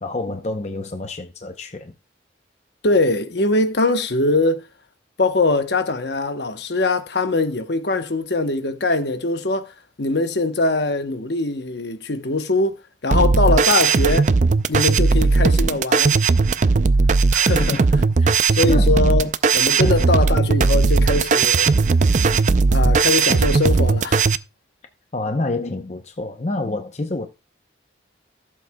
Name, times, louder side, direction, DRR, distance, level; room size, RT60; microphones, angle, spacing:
voice 1, 0.0-1.9 17.6-17.7 18.2-18.4 18.7-19.0 19.8-20.0 25.1-27.3, left 2 dB, 35° left, 0.7 m, -28 dB
voice 2, 2.8-4.6 5.2-9.7 10.0-12.8 13.0-14.3 14.7-16.2 17.3-17.8 18.5-21.7 22.7-24.3, left 2 dB, 60° left, 0.9 m, -22 dB
sound 1, 13.1-24.4, right 4 dB, 40° right, 0.4 m, -17 dB
15.0 x 7.7 x 2.2 m
head